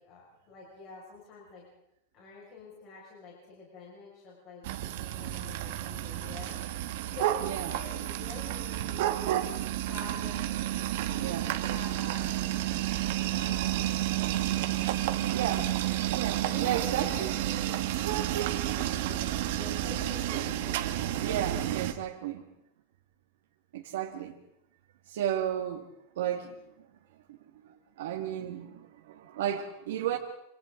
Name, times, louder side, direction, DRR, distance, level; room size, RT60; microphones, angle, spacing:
voice 1, 0.0-1.6 2.1-9.1 9.7-10.5 11.0-12.4 13.3-14.2 14.7-20.9, left 3 dB, 30° left, -5 dB, 6.0 m, -47 dB
sound 1, 4.6-21.9, right 13 dB, 55° right, 1.6 m, -31 dB
voice 2, 7.4-7.8 11.1-11.6 15.3-15.7 16.1-17.3 21.2-22.4 23.7-24.3 25.1-25.9 26.2-26.5 27.6-30.2, right 10 dB, 75° right, 1 dB, 2.0 m, -33 dB
27.5 x 27.0 x 3.9 m, 0.81 s
supercardioid pair, 170°, 0 cm